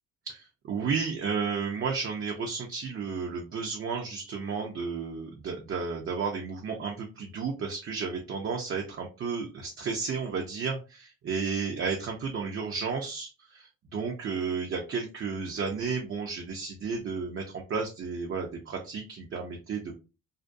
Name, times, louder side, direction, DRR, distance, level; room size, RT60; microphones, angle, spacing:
voice 1, 0.3-19.9, right 5 dB, 45° right, 1 dB, 0.5 m, -33 dB
2.4 x 2.2 x 2.5 m, 0.30 s
cardioid pair, 90°, 30 cm